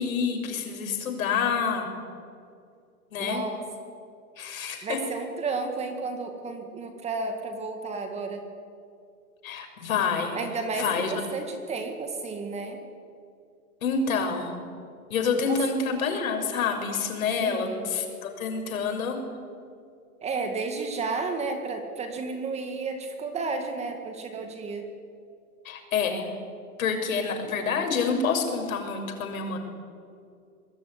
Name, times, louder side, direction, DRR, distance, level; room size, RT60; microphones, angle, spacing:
voice 1, 0.0-1.9 3.1-3.4 4.4-5.0 9.4-10.4 10.7-11.2 13.8-14.6 15.1-19.2 25.6-26.3 26.8-29.6, left 5 dB, 60° left, 5 dB, 6.6 m, -27 dB
voice 2, 3.2-3.6 4.8-8.4 10.3-12.8 15.5-15.6 17.4-17.9 20.2-24.8, right 4 dB, 15° right, 5 dB, 2.0 m, -32 dB
24.5 x 22.0 x 9.7 m, 2.3 s
hypercardioid pair, 150°, 46 cm